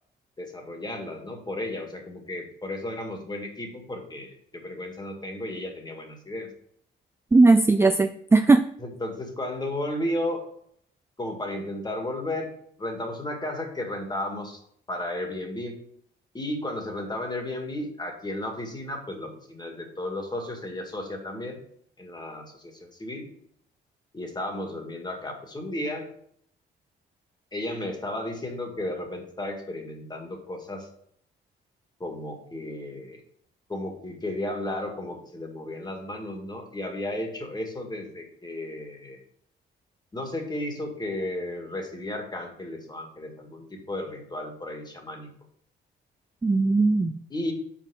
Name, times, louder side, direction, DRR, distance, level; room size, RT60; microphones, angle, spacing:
voice 1, 0.4-6.5 8.8-10.4 11.2-12.5 12.8-14.6 14.9-15.8 16.3-21.6 22.0-23.3 24.1-26.1 27.5-30.9 32.0-33.2 33.7-39.2 40.1-45.3 47.3-47.5, left 1 dB, 20° left, 2 dB, 1.9 m, -34 dB
voice 2, 7.3-8.6 46.4-47.1, right 3 dB, 15° right, 10 dB, 0.3 m, -18 dB
5.8 x 4.6 x 6.2 m, 0.66 s
cardioid pair, 90°, 20 cm